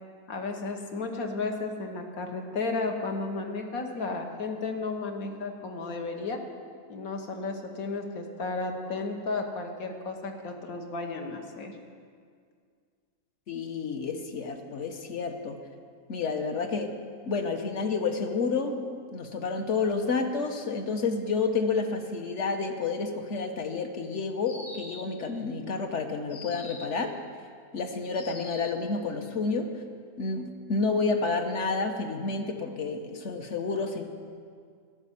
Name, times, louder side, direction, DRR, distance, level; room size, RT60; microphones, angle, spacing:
voice 1, 0.3-6.4 6.9-11.8, left 3 dB, 70° left, 3 dB, 1.7 m, -33 dB
voice 2, 13.5-15.6 16.1-16.9 17.3-27.1 27.7-29.7 30.2-34.0, left 4 dB, 55° left, 5 dB, 1.3 m, -30 dB
sound 1, 24.4-25.2 26.3-27.0 28.1-28.9, left 3 dB, 35° left, 0.8 m, -44 dB
12.5 x 6.7 x 9.9 m, 2.1 s
omnidirectional pair, 1.6 m